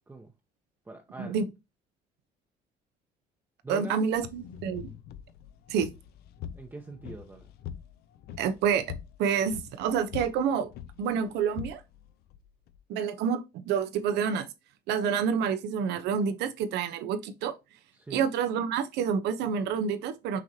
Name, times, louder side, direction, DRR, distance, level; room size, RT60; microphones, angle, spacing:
voice 1, 0.9-1.4 3.6-4.0 6.5-7.5 17.9-18.3, right 3 dB, 10° right, 0.7 m, -42 dB
voice 2, 3.7-4.9 5.7-5.9 8.4-8.8 9.2-10.7 11.0-11.8 12.9-14.5 14.9-17.6 18.1-20.4, right 7 dB, 85° right, 0.8 m, -28 dB
sound 1, 4.1-12.8, left 9 dB, 70° left, 0.5 m, -44 dB
6.1 x 3.1 x 2.7 m
cardioid pair, 110°, 17 cm